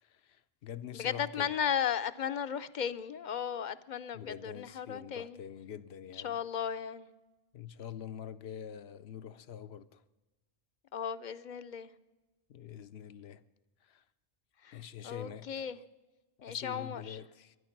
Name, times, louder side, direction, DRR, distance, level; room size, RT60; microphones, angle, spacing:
voice 1, 0.0-1.5 4.1-6.4 7.5-10.0 12.5-13.4 13.8-14.0 14.7-15.7 16.5-17.6, left 9 dB, 75° left, 0.9 m, -45 dB
voice 2, 0.9-5.4 6.1-7.1 10.9-11.9 14.6-15.8 16.4-17.2, left 8 dB, 55° left, 0.7 m, -35 dB
23.5 x 10.0 x 5.9 m
omnidirectional pair, 1.1 m